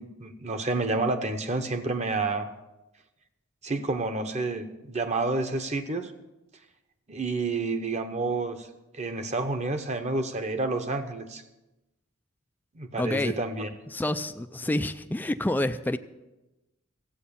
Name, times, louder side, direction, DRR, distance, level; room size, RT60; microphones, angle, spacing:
voice 1, 0.0-2.5 3.6-6.1 7.1-8.6 8.9-11.4 12.7-13.7, right 3 dB, 35° right, 0.9 m, -29 dB
voice 2, 13.0-13.4 13.9-16.0, left 1 dB, 10° left, 0.3 m, -28 dB
14.0 x 8.1 x 7.0 m
head